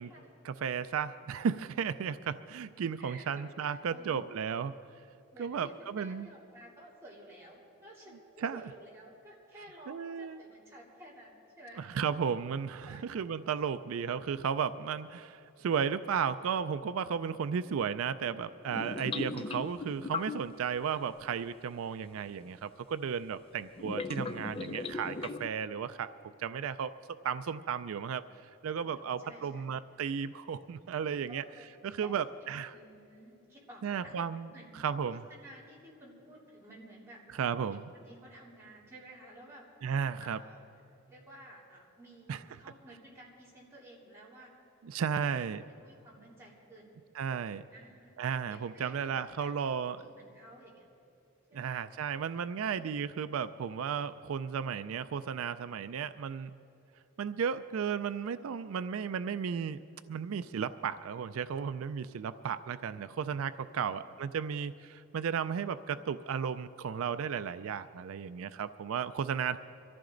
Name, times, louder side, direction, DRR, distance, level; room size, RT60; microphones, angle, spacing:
voice 1, 0.4-4.7 5.4-6.3 8.4-8.6 9.9-10.4 11.8-26.1 26.4-26.9 27.2-28.2 28.6-31.4 31.8-32.7 33.8-34.5 34.7-35.2 37.4-37.8 39.8-40.4 42.3-42.4 44.8-45.6 47.2-47.6 48.2-50.0 51.5-56.5 57.2-59.8 60.1-69.6, right 7 dB, 80° right, 12 dB, 0.4 m, -34 dB
voice 2, 3.0-4.2 5.3-11.9 12.8-13.0 21.8-22.0 28.8-29.7 31.3-31.7 32.0-32.1 32.7-34.3 34.5-37.2 37.6-39.7 40.2-40.6 41.1-44.5 45.2-45.5 45.8-46.9 47.7-48.2 48.5-49.5 50.0-50.8 51.5-51.8, right 1 dB, 10° right, -6 dB, 3.2 m, -53 dB
sound 1, 18.7-20.6 22.4-22.5 23.8-25.5, left 4 dB, 25° left, 0.4 m, -38 dB
23.5 x 14.0 x 3.9 m, 2.7 s
head